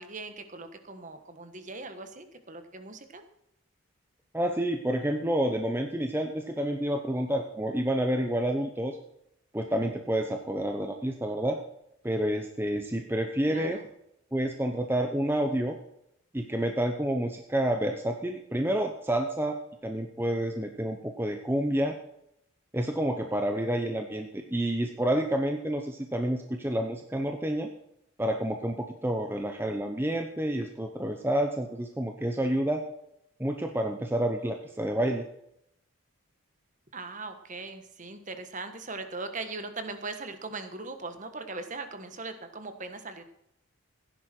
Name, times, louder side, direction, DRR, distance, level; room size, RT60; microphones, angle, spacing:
voice 1, 0.0-3.2 13.5-13.8 36.9-43.2, right 3 dB, 35° right, 8 dB, 1.4 m, -40 dB
voice 2, 4.3-9.0 9.5-11.6 12.0-13.8 14.3-15.8 16.3-19.6 19.8-22.0 22.7-27.7 28.2-32.8 33.4-35.2, right 1 dB, 10° right, 4 dB, 0.8 m, -29 dB
16.5 x 10.0 x 4.5 m, 0.77 s
head